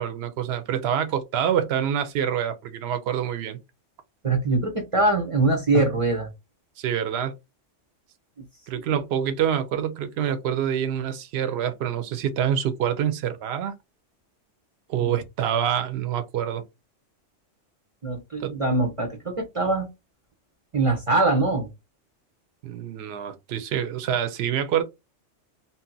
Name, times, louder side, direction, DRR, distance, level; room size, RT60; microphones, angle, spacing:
voice 1, 0.0-3.6 6.8-7.3 8.7-13.7 14.9-16.6 18.4-18.5 22.6-24.8, right 9 dB, 65° right, 0.8 m, -26 dB
voice 2, 4.2-6.3 15.0-15.2 18.0-19.9 20.7-21.7, right 2 dB, 35° right, 0.6 m, -23 dB
2.7 x 2.1 x 3.8 m
omnidirectional pair, 1.3 m